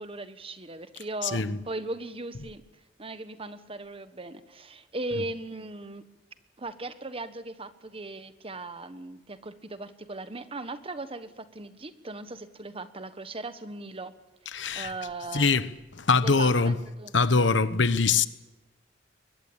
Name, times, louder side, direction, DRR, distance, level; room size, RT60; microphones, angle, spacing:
voice 1, 0.0-2.6 3.0-6.0 6.6-14.1 14.7-15.5 16.2-17.1, right 2 dB, 30° right, 1.3 m, -38 dB
voice 2, 14.5-14.9 15.3-15.7 16.0-16.8 17.1-18.3, left 4 dB, 75° left, 1.1 m, -23 dB
22.5 x 20.5 x 8.8 m
head